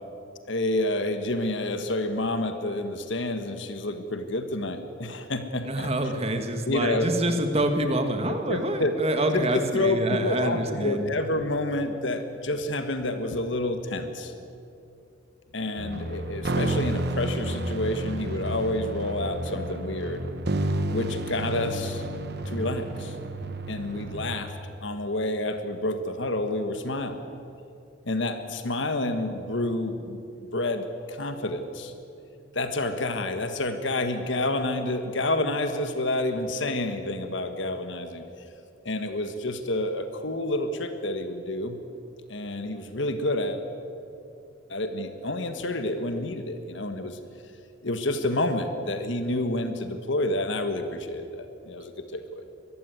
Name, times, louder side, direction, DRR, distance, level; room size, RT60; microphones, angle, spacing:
voice 1, 0.5-5.9 6.7-7.1 8.5-8.9 9.3-9.5 9.7-14.3 15.5-20.2 20.9-22.0 22.4-23.2 23.7-24.5 24.8-27.2 28.0-30.2 30.5-31.9 32.5-38.2 38.8-41.8 42.3-43.6 44.7-47.2 47.8-52.4, left 1 dB, 65° left, 8 dB, 1.5 m, -29 dB
voice 2, 5.6-11.1, right 1 dB, 30° right, 6 dB, 1.9 m, -26 dB
sound 1, 15.8-24.4, right 1 dB, 55° right, 1.3 m, -31 dB
23.0 x 14.5 x 9.4 m, 2.6 s
head